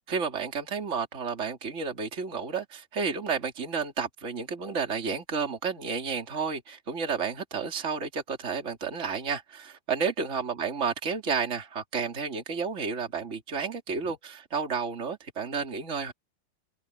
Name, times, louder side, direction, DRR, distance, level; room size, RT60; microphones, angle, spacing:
voice 1, 0.1-16.1, right 5 dB, 20° right, 2.6 m, -31 dB
omnidirectional pair, 4.9 m